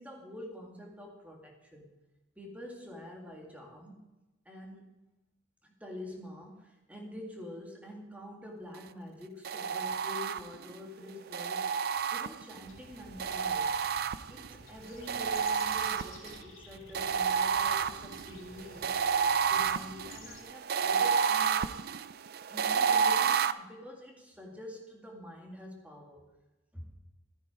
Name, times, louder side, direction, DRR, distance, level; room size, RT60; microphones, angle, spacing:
voice 1, 0.0-1.9 2.4-4.0 4.5-4.9 5.6-11.8 12.1-13.8 14.3-18.9 19.4-21.7 22.5-26.2 26.7-26.9, left 1 dB, 5° right, 0 dB, 2.1 m, -46 dB
sound 1, 9.4-10.7 11.3-12.6 13.2-14.5 15.1-16.4 16.9-23.5, right 6 dB, 50° right, 0.4 m, -30 dB
sound 2, 12.6-20.4, left 3 dB, 90° left, 2.4 m, -53 dB
13.0 x 10.0 x 4.9 m, 1.0 s
head